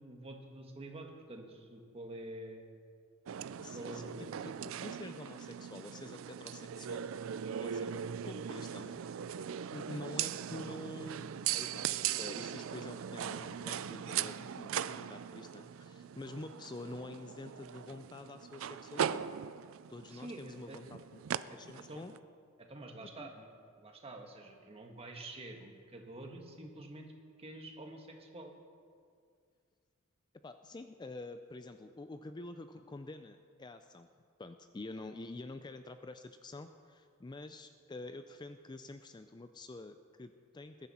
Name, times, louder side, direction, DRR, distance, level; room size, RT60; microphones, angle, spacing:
voice 1, 0.0-2.6 3.7-4.4 20.0-20.8 21.5-22.0 22.7-23.5 23.8-27.1 27.4-28.5, right 1 dB, 30° right, 2 dB, 1.6 m, -48 dB
sound 1, 3.3-22.2, right 9 dB, 70° right, 0.4 m, -39 dB
voice 2, 3.6-8.0 8.2-9.0 9.7-11.9 12.1-19.2 19.9-22.1 23.0-23.3 30.4-34.1 34.4-40.9, left 2 dB, 20° left, 9 dB, 0.4 m, -48 dB
20.5 x 11.0 x 4.3 m, 2.2 s
head